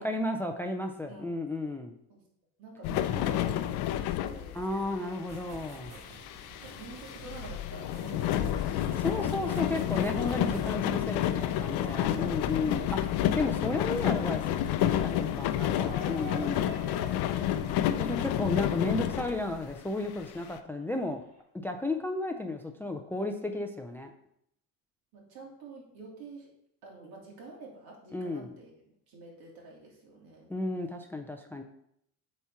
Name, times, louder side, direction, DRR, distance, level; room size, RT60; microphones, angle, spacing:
voice 1, 0.0-2.0 4.5-5.9 9.0-16.7 18.0-21.2 21.6-24.1 28.1-28.5 30.5-31.6, left 2 dB, 5° left, 5 dB, 0.4 m, -33 dB
voice 2, 2.6-5.2 5.9-6.0 6.6-9.3 11.6-11.7 25.1-26.5 26.8-30.5, right 3 dB, 70° right, -2 dB, 3.3 m, -48 dB
sound 1, 2.8-19.7 20.2-20.3 20.5-20.6, left 11 dB, 80° left, 0.7 m, -30 dB
sound 2, 5.3-11.8, right 1 dB, 40° right, 1.4 m, -49 dB
sound 3, 15.8-21.4, right 3 dB, 20° right, 3.7 m, -50 dB
8.2 x 4.4 x 5.7 m, 0.73 s
cardioid pair, 140°, 38 cm